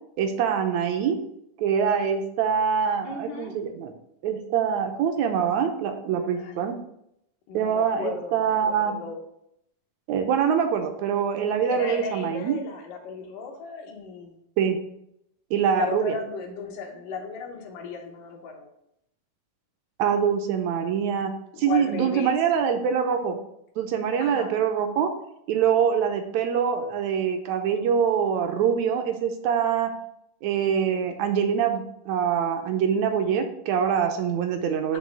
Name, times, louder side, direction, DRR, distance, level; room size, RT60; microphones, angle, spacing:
voice 1, 0.2-1.2 1.6-3.9 4.2-6.8 7.5-9.0 10.1-12.6 14.6-14.8 15.5-16.2 20.0-23.4 23.8-25.1 25.5-29.9 30.4-35.0, right 7 dB, 75° right, 6 dB, 1.8 m, -24 dB
voice 2, 3.0-3.6 6.3-6.7 7.5-9.2 11.7-14.4 15.5-18.7 21.5-22.7 24.2-24.5 34.9-35.0, left 5 dB, 80° left, 2 dB, 2.7 m, -36 dB
7.6 x 3.2 x 6.2 m, 0.76 s
omnidirectional pair, 3.7 m